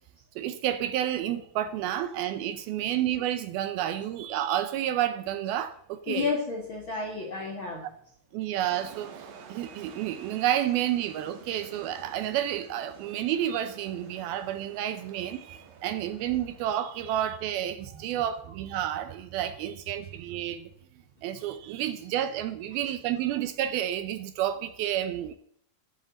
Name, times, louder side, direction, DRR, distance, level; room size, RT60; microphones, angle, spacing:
voice 1, 0.4-6.3 8.3-20.7 21.2-25.3, right 11 dB, 80° right, 2.4 m, -30 dB
voice 2, 6.1-7.8 17.9-18.0, left 4 dB, 50° left, 1.6 m, -31 dB
sound 1, 8.7-17.7, right 6 dB, 60° right, 3.1 m, -50 dB
13.0 x 7.8 x 7.2 m
omnidirectional pair, 4.8 m